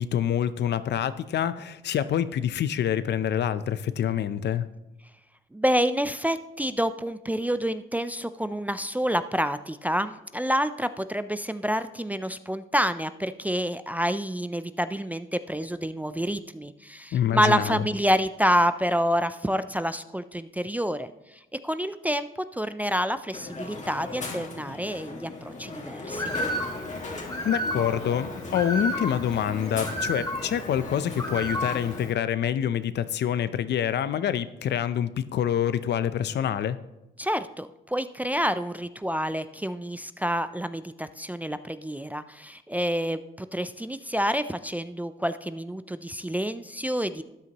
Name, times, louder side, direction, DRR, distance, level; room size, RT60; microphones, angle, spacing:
voice 1, 0.0-4.7 17.1-17.9 27.4-36.8, left 9 dB, 60° left, 14 dB, 0.6 m, -26 dB
voice 2, 5.5-21.1 21.6-26.2 37.2-47.2, equal, 10° right, 11 dB, 0.4 m, -28 dB
Crowd, 23.3-32.1, left 2 dB, 35° left, 1.8 m, -38 dB
Bird, 26.1-32.1, equal, 20° left, 2.8 m, -33 dB
13.0 x 9.4 x 2.9 m, 0.95 s
cardioid pair, 90°, 20 cm